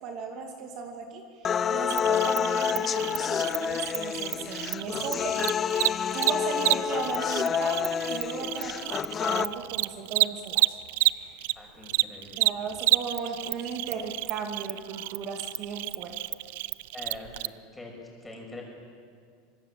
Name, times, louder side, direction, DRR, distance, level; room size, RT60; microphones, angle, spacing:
voice 1, 0.0-5.6 6.1-10.6 11.0-11.5 12.4-16.2, right 5 dB, 50° right, 3 dB, 2.5 m, -36 dB
sound 1, 1.4-9.4, left 8 dB, 30° left, 0.6 m, -28 dB
Cricket, 1.9-11.5 11.8-17.5, right 19 dB, 75° right, 0.5 m, -29 dB
voice 2, 11.5-12.5 16.9-17.9 18.2-18.6, left 2 dB, 10° left, 0 dB, 6.5 m, -44 dB
25.0 x 20.0 x 7.7 m, 2.1 s
supercardioid pair, 130°, 0 cm